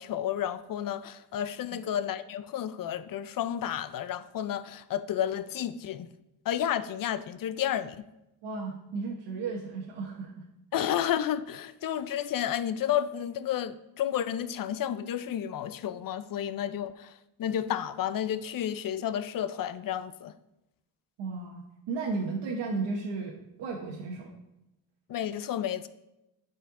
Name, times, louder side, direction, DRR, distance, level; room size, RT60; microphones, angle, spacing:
voice 1, 0.0-6.1 6.5-8.0 10.7-17.1 17.4-20.3 25.1-25.9, left 10 dB, 55° left, 0.6 m, -31 dB
voice 2, 8.4-10.5 21.2-24.3, right 4 dB, 85° right, 1.1 m, -34 dB
12.0 x 4.5 x 3.7 m
cardioid pair, 95°, 41 cm